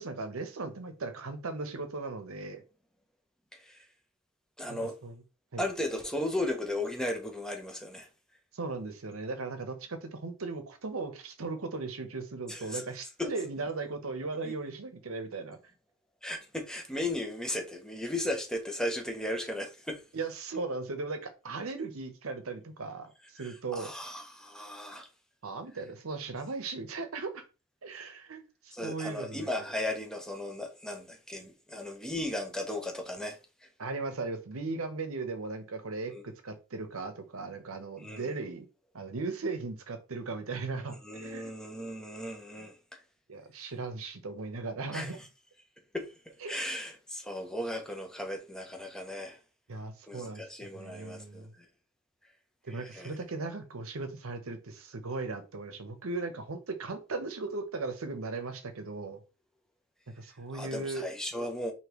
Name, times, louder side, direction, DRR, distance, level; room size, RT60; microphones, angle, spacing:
voice 1, 0.0-2.6 4.7-5.2 5.5-5.6 8.5-15.6 20.1-23.9 25.4-27.4 27.8-28.4 28.8-29.5 33.8-38.7 38.9-41.5 42.6-42.7 43.3-45.2 46.4-46.5 49.7-51.5 52.6-59.2 60.2-61.1, right 3 dB, 75° right, 0.8 m, -37 dB
voice 2, 3.5-3.8 4.6-5.0 5.6-8.1 12.5-12.8 13.2-13.3 14.4-14.5 16.2-20.0 23.4-25.1 28.7-33.4 36.1-36.2 38.0-38.3 41.0-43.0 44.9-45.2 45.9-46.1 46.5-49.4 50.1-51.5 52.7-53.2 53.4-53.5 60.5-61.7, left 1 dB, 5° left, 0.7 m, -36 dB
5.0 x 2.8 x 3.0 m
head